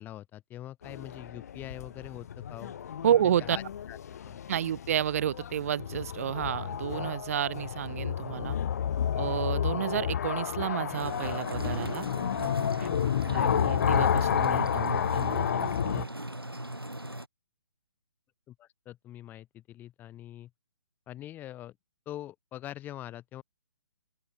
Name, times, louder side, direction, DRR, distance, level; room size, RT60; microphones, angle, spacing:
voice 1, 0.0-2.7 3.4-3.6 3.9-4.0 4.2-4.4 18.5-20.5 21.1-21.7 22.1-23.4, left 13 dB, 15° left, 4.0 m, -43 dB
sound 1, 0.8-16.1, left 9 dB, 45° left, 1.2 m, -31 dB
voice 2, 3.0-3.6 4.5-8.6 9.2-12.1 12.4-12.5 12.8-12.9 13.3-16.1, right 10 dB, 40° right, 1.1 m, -30 dB
sound 2, 10.9-17.3, right 1 dB, 90° right, 6.7 m, -39 dB
open air
figure-of-eight pair, 135°, 12 cm